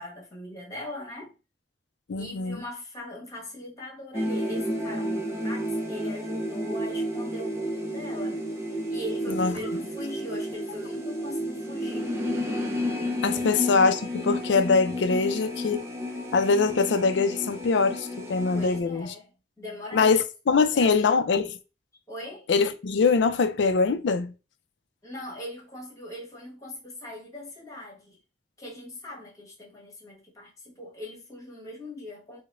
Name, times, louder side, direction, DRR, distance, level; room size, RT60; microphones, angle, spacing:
voice 1, 0.0-1.3 2.1-8.4 8.9-12.1 13.3-13.5 18.5-19.3 19.6-20.2 20.5-21.3 22.1-22.5 25.0-28.2 28.6-32.4, left 1 dB, 20° left, 1.5 m, -40 dB
voice 2, 2.1-2.6 9.3-9.5 13.2-15.8 16.3-19.1 19.9-21.5 22.5-24.3, left 4 dB, 80° left, 0.4 m, -23 dB
sound 1, 4.1-18.8, equal, 15° right, 0.7 m, -31 dB
4.7 x 2.1 x 2.5 m
head